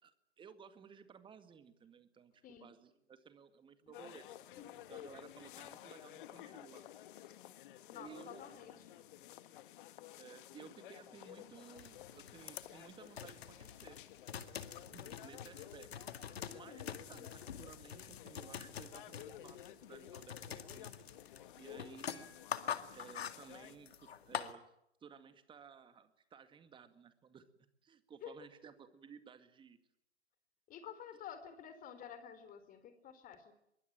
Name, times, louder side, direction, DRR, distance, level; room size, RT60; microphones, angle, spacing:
voice 1, 0.0-4.3 4.9-7.4 7.9-8.5 10.2-14.0 14.9-15.9 16.2-20.9 21.5-22.3 22.9-24.6 25.0-27.4 27.8-29.8, right 7 dB, 15° right, 10 dB, 2.1 m, -57 dB
sound 1, 3.9-23.8, left 12 dB, 50° left, 1.8 m, -54 dB
voice 2, 7.9-8.9 16.4-16.9 28.2-28.5 30.7-33.5, left 8 dB, 25° left, 11 dB, 4.0 m, -51 dB
sound 2, 11.8-24.5, left 8 dB, 65° left, 2.2 m, -46 dB
24.5 x 23.0 x 9.0 m, 0.79 s
figure-of-eight pair, 115°, 33 cm